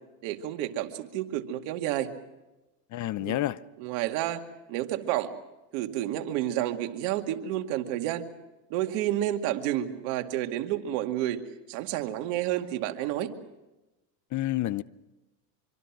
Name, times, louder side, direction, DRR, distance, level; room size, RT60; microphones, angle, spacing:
voice 1, 0.2-2.1 3.2-3.4 3.8-4.4 4.7-5.3 5.7-8.3 8.7-11.4 11.7-13.3, right 13 dB, 65° right, 2.3 m, -30 dB
voice 2, 2.9-3.6 14.3-14.8, left 15 dB, 40° left, 0.7 m, -29 dB
25.5 x 24.5 x 6.2 m
supercardioid pair, 105°, 47 cm